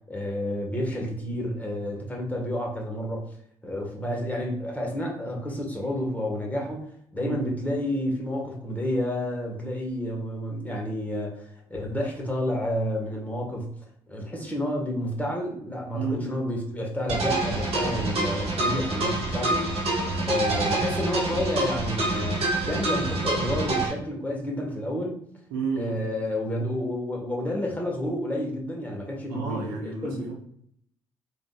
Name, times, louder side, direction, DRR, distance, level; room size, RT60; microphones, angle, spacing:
voice 1, 0.1-3.2 3.6-6.9 7.1-13.7 14.1-19.9 20.2-25.2 25.8-30.3, left 1 dB, 15° left, -1 dB, 1.3 m, -30 dB
voice 2, 15.9-16.3 25.5-26.0 29.3-30.4, right 4 dB, 85° right, -1 dB, 0.7 m, -31 dB
sound 1, 17.1-23.9, right 2 dB, 50° right, 1.3 m, -27 dB
3.4 x 2.6 x 2.3 m, 0.68 s
hypercardioid pair, 50°, 12 cm